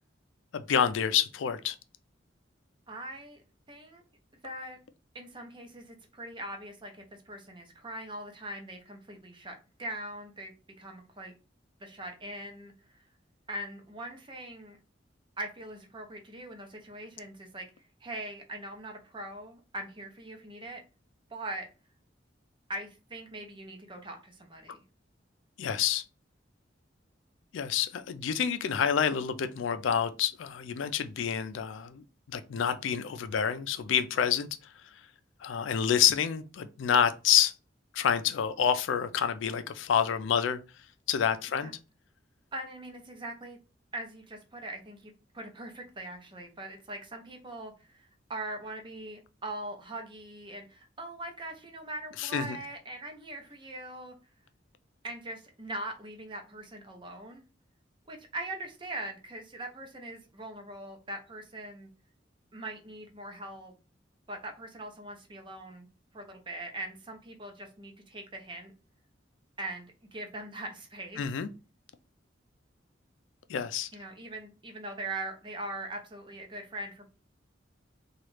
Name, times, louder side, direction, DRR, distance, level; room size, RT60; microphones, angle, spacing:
voice 1, 0.5-1.8 25.6-26.0 27.5-34.5 35.4-37.5 37.9-40.6 41.1-41.7 52.2-52.6 71.2-71.5 73.5-73.9, left 8 dB, 85° left, 0.4 m, -28 dB
voice 2, 2.9-3.4 3.7-4.0 4.4-4.8 5.1-10.5 10.8-11.3 11.8-13.0 13.5-14.8 15.4-17.7 18.0-20.8 21.3-21.7 22.7-24.8 41.5-41.7 42.5-43.6 43.9-54.2 55.0-57.4 58.1-61.9 62.5-63.7 64.3-65.9 66.1-68.7 69.6-71.3 73.9-77.1, right 1 dB, 25° right, 0.7 m, -41 dB
3.0 x 2.4 x 3.1 m
head